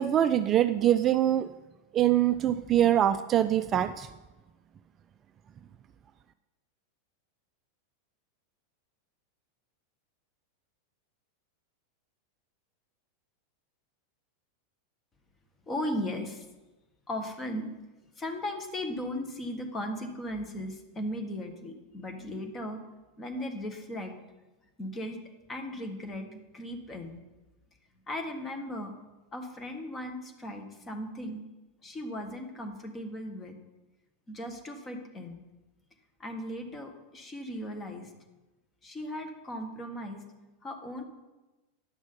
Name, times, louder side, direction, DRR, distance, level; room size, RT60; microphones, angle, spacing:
voice 1, 0.0-1.5 1.9-4.1, right 11 dB, 30° right, 11 dB, 0.4 m, -24 dB
voice 2, 15.7-16.4 17.1-17.7 18.2-22.8 23.2-24.1 24.8-25.2 25.5-27.2 28.1-28.9 29.3-31.4 31.8-33.5 34.3-35.4 36.2-38.1 38.8-40.2 40.6-41.0, left 1 dB, 20° left, 5 dB, 1.7 m, -37 dB
10.5 x 6.1 x 5.4 m, 1.1 s
figure-of-eight pair, 90°, 0 cm